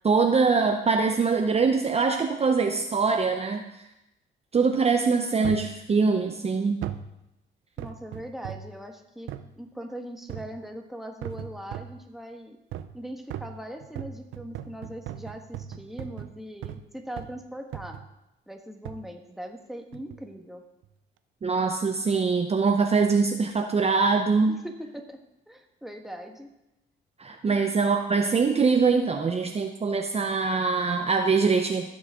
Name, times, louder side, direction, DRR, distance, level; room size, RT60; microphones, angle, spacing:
voice 1, 0.0-3.6 4.5-6.8 21.4-24.6 27.2-31.9, right 4 dB, 30° right, 4 dB, 0.7 m, -23 dB
sound 1, 5.4-5.8 6.8-7.1 7.8-8.7 9.3-9.5 10.3-10.6 11.2-12.0 12.7-13.0 13.3-16.9 17.2-17.4 17.7-18.1 18.8-19.1 19.9-20.2 20.8-20.9, right 10 dB, 80° right, 0.6 m, -38 dB
voice 2, 7.8-9.3 9.6-12.6 12.9-18.0 18.5-20.6 24.5-25.2 25.5-26.5 27.5-27.6, equal, ahead, 3 dB, 1.3 m, -40 dB
15.0 x 6.3 x 3.7 m, 0.90 s
cardioid pair, 90°, 20 cm